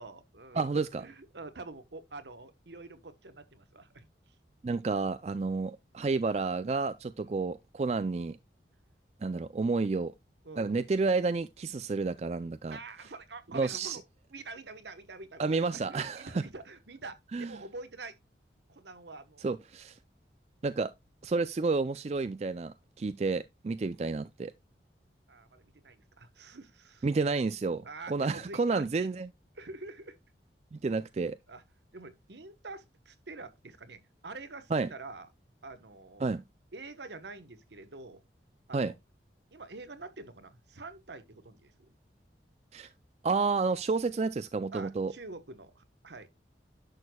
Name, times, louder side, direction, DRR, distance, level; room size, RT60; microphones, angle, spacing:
voice 1, 0.0-4.3 5.6-5.7 7.2-7.4 10.4-10.9 12.7-14.0 14.3-18.2 18.7-19.5 25.3-27.1 27.8-29.1 29.5-30.2 31.5-31.6 31.9-35.3 35.6-36.2 36.7-38.2 38.7-38.9 39.5-41.9 44.7-46.3, right 3 dB, 75° right, 1.1 m, -46 dB
voice 2, 0.5-1.1 4.6-8.4 9.2-10.1 10.6-12.8 13.5-14.0 15.4-16.4 17.3-17.5 19.4-20.0 20.6-20.9 21.2-24.5 27.0-29.3 30.7-31.4 34.7-34.9 36.2-36.4 38.7-38.9 42.7-42.9 43.2-45.1, right 4 dB, 35° right, 0.3 m, -30 dB
10.5 x 6.6 x 2.3 m
head